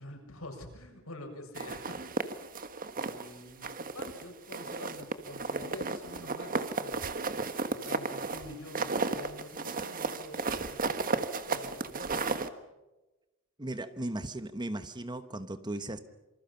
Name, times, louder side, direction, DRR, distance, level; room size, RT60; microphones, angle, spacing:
voice 1, 0.0-2.2 2.9-11.2 11.5-12.3, left 1 dB, 75° left, 2 dB, 7.1 m, -47 dB
sound 1, 1.6-3.3 3.6-4.2 4.5-12.5, right 3 dB, 40° right, 1.4 m, -34 dB
voice 2, 13.6-16.0, right 1 dB, 20° right, 10 dB, 1.2 m, -37 dB
27.0 x 25.5 x 5.8 m, 1.0 s
head